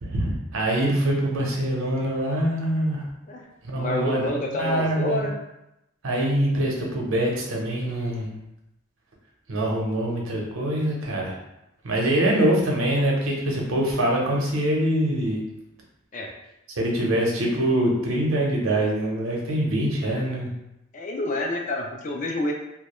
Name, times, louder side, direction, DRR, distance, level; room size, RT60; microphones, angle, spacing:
voice 1, 0.0-3.0 3.6-4.3 4.6-5.2 6.0-8.4 9.5-11.3 11.8-15.4 16.8-20.5, right 1 dB, 75° right, -2 dB, 0.6 m, -24 dB
voice 2, 3.7-5.4 16.1-16.3 20.0-20.3 20.9-22.5, left 1 dB, 40° left, 1 dB, 0.3 m, -28 dB
2.2 x 2.1 x 2.9 m, 0.89 s
head